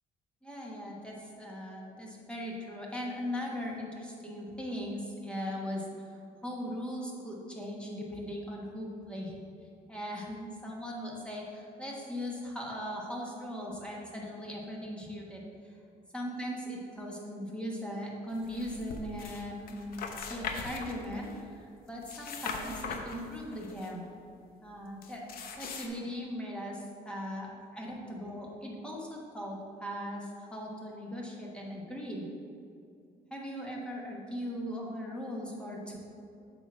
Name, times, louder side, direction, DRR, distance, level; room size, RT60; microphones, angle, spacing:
voice 1, 0.4-6.1 6.4-9.4 9.9-15.7 16.1-20.0 20.3-24.1 24.6-25.3 25.6-32.2 33.3-36.0, equal, 5° left, -3 dB, 1.2 m, -39 dB
sound 1, 18.4-19.4 19.7-21.4 21.9-23.9 25.0-25.9, left 5 dB, 60° left, 0.8 m, -40 dB
8.0 x 3.0 x 6.0 m, 2.5 s
cardioid pair, 110°, 17 cm